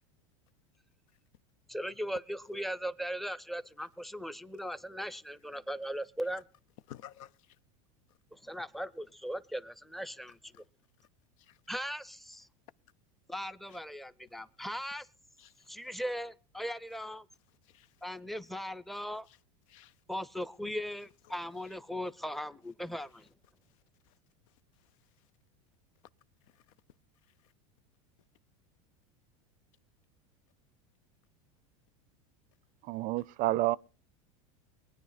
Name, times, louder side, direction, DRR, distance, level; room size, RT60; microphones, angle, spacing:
voice 1, 1.7-6.4 8.3-10.5 11.7-12.5 13.3-15.1 15.7-17.3 18.0-19.3 20.1-23.3, equal, ahead, 0.6 m, -38 dB
voice 2, 6.9-7.6 10.5-10.7 11.0-11.1 11.4-11.6 13.7-13.8 14.6-14.7 15.4-15.7 17.6-18.0 19.3-19.4 19.7-20.0 21.2-21.3 21.6-21.8 23.6-24.2 24.5-25.3 26.4-26.7 27.2-27.5, left 12 dB, 70° left, 0.6 m, -56 dB
voice 3, 32.8-33.8, right 17 dB, 50° right, 0.5 m, -29 dB
22.5 x 9.7 x 4.0 m
supercardioid pair, 120°, 17 cm